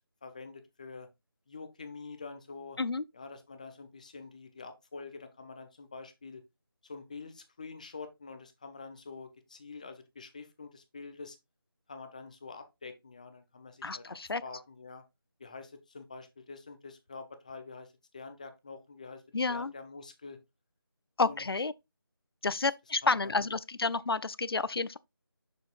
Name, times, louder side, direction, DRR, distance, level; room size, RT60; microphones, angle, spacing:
voice 1, 0.2-1.1 1.5-2.8 3.1-6.4 6.8-11.4 11.9-14.1 14.4-15.0 15.4-19.2 19.5-20.4 21.2-21.5 22.4-22.5 23.0-23.5, left 4 dB, 20° left, 0.6 m, -46 dB
voice 2, 13.8-14.4 19.3-19.7 21.2-21.7 22.4-25.0, left 4 dB, 75° left, 0.5 m, -30 dB
6.5 x 6.4 x 2.4 m
figure-of-eight pair, 165°, 13 cm